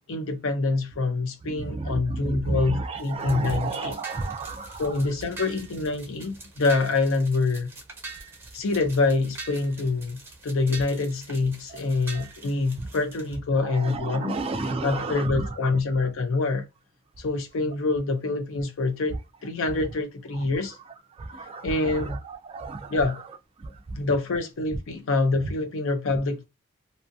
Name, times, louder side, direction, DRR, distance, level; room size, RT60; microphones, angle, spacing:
voice 1, 0.1-4.0 4.8-7.7 8.5-14.4 14.8-16.7 17.2-20.8 21.6-22.2 22.9-23.2 24.0-26.4, left 3 dB, 70° left, 0.5 m, -26 dB
voice 2, 1.4-5.0 12.1-12.2 12.8-12.9 13.7-15.5 21.2-23.0 23.6-24.0, right 3 dB, 25° right, 0.4 m, -32 dB
sound 1, 2.9-13.4, right 3 dB, 10° right, 1.0 m, -44 dB
2.7 x 2.5 x 2.6 m
head